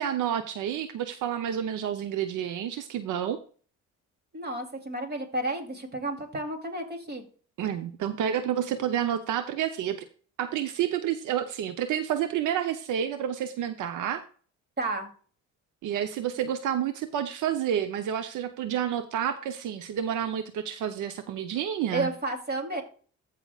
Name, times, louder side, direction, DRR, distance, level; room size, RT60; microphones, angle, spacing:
voice 1, 0.0-3.4 7.6-10.0 10.4-14.2 15.8-22.1, right 9 dB, 80° right, 9 dB, 0.8 m, -29 dB
voice 2, 4.3-7.2 14.8-15.1 21.9-22.8, right 2 dB, 35° right, 4 dB, 3.0 m, -31 dB
15.0 x 5.9 x 2.4 m, 0.41 s
cardioid pair, 90°, 30 cm